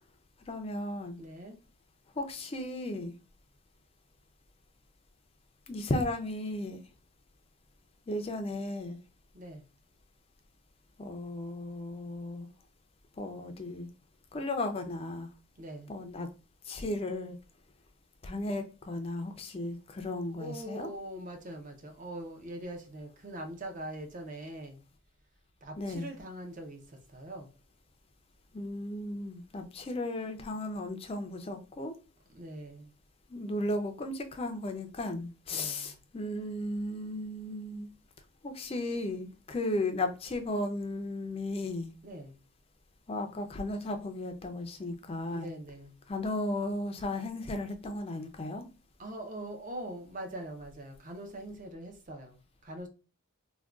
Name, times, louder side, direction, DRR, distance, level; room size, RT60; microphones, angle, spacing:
voice 1, 0.5-1.2 2.2-3.1 5.7-6.8 8.1-9.0 11.0-12.5 13.2-13.9 14.3-15.3 15.9-16.3 16.6-17.4 18.2-20.9 25.8-26.1 28.5-32.0 33.3-37.9 38.4-41.9 43.1-45.5 46.1-48.7, left 1 dB, 25° left, 0.4 m, -35 dB
voice 2, 1.2-1.6 9.3-9.6 15.6-15.9 20.3-24.8 25.6-27.5 32.3-32.9 35.5-36.0 42.0-42.4 45.3-46.0 49.0-52.9, right 1 dB, 35° right, 0.5 m, -42 dB
3.6 x 2.2 x 2.3 m
head